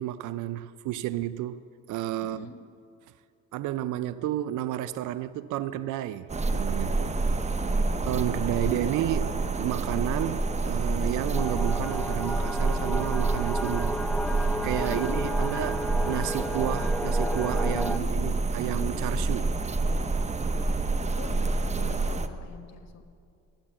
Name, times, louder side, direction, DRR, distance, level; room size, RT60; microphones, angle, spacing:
voice 1, 0.0-1.6 1.9-2.5 3.5-7.2 8.1-9.3 9.6-14.0 14.6-19.5, right 13 dB, 80° right, 0.5 m, -31 dB
voice 2, 2.2-2.5 7.2-8.0 8.6-8.8 14.8-15.7 17.7-18.4 20.6-23.0, left 5 dB, 60° left, 1.4 m, -44 dB
sound 1, 6.3-22.3, right 3 dB, 25° right, 0.8 m, -28 dB
sound 2, 11.3-18.0, left 1 dB, 5° left, 0.4 m, -33 dB
12.0 x 9.5 x 8.6 m
cardioid pair, 90°, 30 cm